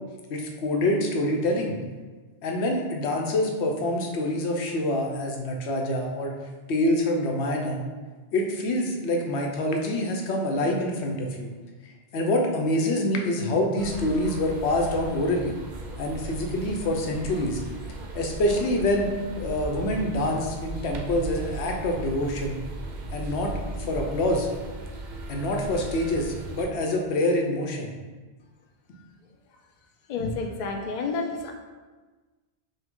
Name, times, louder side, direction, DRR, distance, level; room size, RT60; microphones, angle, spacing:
voice 1, 0.3-1.8 2.4-6.3 6.7-7.8 8.3-11.5 12.1-15.5 16.0-17.6 18.1-19.1 19.4-22.6 23.1-23.5 23.8-24.5 25.3-27.9, left 1 dB, 85° left, 1 dB, 1.0 m, -26 dB
sound 1, 13.8-26.7, right 2 dB, 55° right, 0.6 m, -37 dB
voice 2, 30.1-31.5, left 4 dB, 55° left, 2 dB, 0.5 m, -30 dB
5.4 x 2.2 x 3.6 m, 1.3 s
omnidirectional pair, 1.1 m